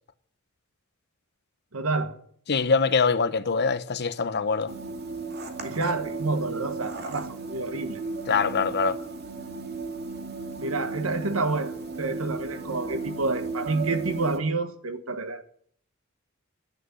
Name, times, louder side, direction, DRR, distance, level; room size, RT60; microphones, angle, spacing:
voice 1, 1.7-2.2 5.6-8.0 10.6-15.4, right 3 dB, 80° right, 1.5 m, -29 dB
voice 2, 2.5-4.7 8.3-9.0, left 5 dB, 55° left, 0.9 m, -24 dB
sound 1, 4.7-14.4, right 4 dB, 50° right, 2.3 m, -35 dB
11.0 x 9.9 x 9.8 m
head